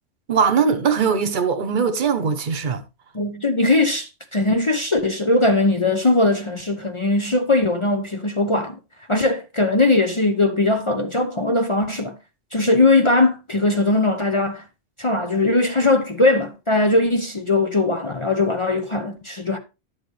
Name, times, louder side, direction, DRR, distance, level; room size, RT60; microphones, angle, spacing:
voice 1, 0.3-2.8, right 6 dB, 45° right, 1.0 m, -20 dB
voice 2, 3.1-8.8 9.1-12.2 12.5-14.6 15.0-19.6, left 2 dB, 30° left, 0.7 m, -20 dB
11.0 x 7.3 x 3.2 m
omnidirectional pair, 1.2 m